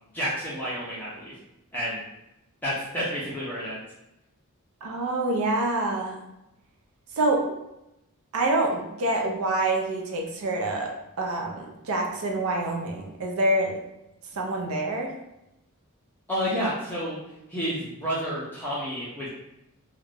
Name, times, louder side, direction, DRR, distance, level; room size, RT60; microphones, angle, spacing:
voice 1, 0.1-1.3 1.7-2.0 2.6-3.8 16.3-17.2 17.5-19.3, equal, 10° left, -9 dB, 0.5 m, -30 dB
voice 2, 4.8-6.2 7.2-7.4 8.3-10.9 11.2-13.8 14.3-15.1, right 2 dB, 70° right, 1 dB, 0.5 m, -26 dB
2.4 x 2.2 x 3.2 m, 0.88 s
head